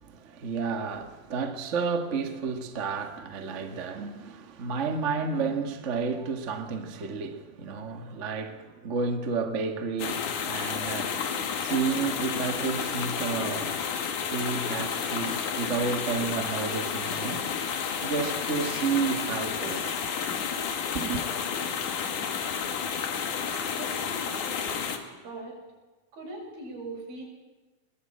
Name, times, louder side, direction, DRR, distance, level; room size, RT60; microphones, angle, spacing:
voice 1, 0.0-11.3 11.6-13.8 14.3-17.5 18.0-20.0 20.9-21.3, right 5 dB, 40° right, 1.1 m, -31 dB
sound 1, 10.0-25.0, left 7 dB, 60° left, 3.1 m, -31 dB
voice 2, 23.7-24.7 25.1-25.6 26.1-27.2, right 2 dB, 85° right, 8.6 m, -41 dB
21.5 x 19.5 x 8.8 m
omnidirectional pair, 4.2 m